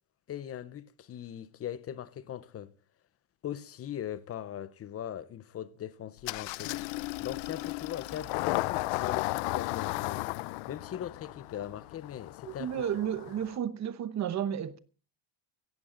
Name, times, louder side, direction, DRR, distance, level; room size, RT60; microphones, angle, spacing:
voice 1, 0.3-2.7 3.4-10.3 10.7-12.7, left 10 dB, 30° left, 0.7 m, -40 dB
Engine starting, 6.2-13.6, left 22 dB, 70° left, 0.7 m, -35 dB
voice 2, 12.4-14.8, right 9 dB, 35° right, 0.9 m, -32 dB
17.0 x 15.0 x 3.8 m
cardioid pair, 160°, 48 cm